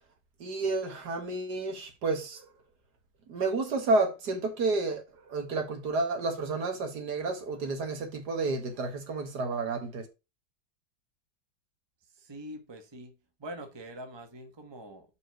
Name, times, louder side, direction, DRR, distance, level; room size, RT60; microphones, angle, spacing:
voice 1, 0.4-2.5 3.3-10.1, right 3 dB, 70° right, 2.0 m, -30 dB
voice 2, 12.0-15.2, right 1 dB, 15° right, 1.2 m, -44 dB
5.4 x 4.7 x 6.4 m
omnidirectional pair, 1.8 m